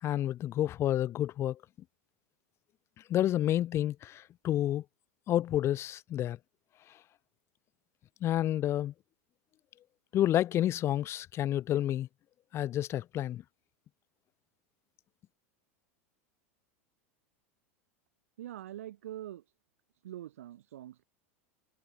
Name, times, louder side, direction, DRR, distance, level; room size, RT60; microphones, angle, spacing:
voice 1, 0.0-1.6 3.1-4.8 5.3-6.4 8.2-8.9 10.1-12.1 12.5-13.4, left 12 dB, 35° left, 1.5 m, -29 dB
voice 2, 18.4-19.4 20.0-21.0, right 12 dB, 90° right, 5.0 m, -44 dB
supercardioid pair, 125°, 7 cm